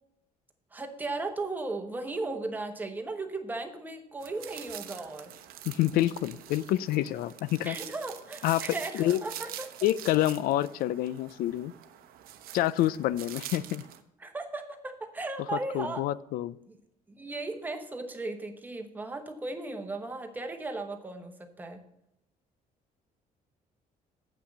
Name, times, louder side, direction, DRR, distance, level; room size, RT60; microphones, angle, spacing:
voice 1, 0.7-5.3 7.6-9.7 14.2-16.1 16.7-16.8 17.2-21.8, right 3 dB, 10° right, 5 dB, 1.0 m, -36 dB
sound 1, 4.2-14.0, right 11 dB, 85° right, 0.8 m, -45 dB
voice 2, 5.7-7.8 8.4-8.6 8.9-9.2 9.8-11.7 12.5-13.8 15.7-16.6, left 14 dB, 85° left, 18 dB, 0.4 m, -27 dB
8.4 x 5.9 x 6.6 m, 0.80 s
cardioid pair, 160°, 15 cm